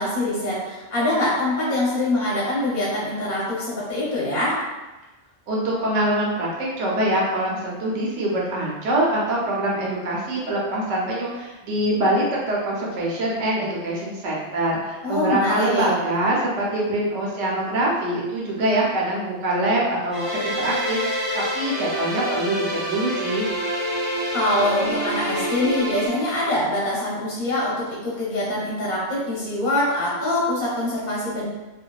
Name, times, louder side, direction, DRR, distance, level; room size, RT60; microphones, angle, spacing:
voice 1, 0.0-4.6 15.0-15.9 24.3-31.5, left 1 dB, 45° left, -7 dB, 0.8 m, -24 dB
voice 2, 5.5-23.5, right 1 dB, 80° right, -4 dB, 1.0 m, -24 dB
sound 1, 20.1-26.1, equal, 35° right, 0.6 m, -27 dB
2.6 x 2.1 x 2.2 m, 1.1 s
omnidirectional pair, 1.3 m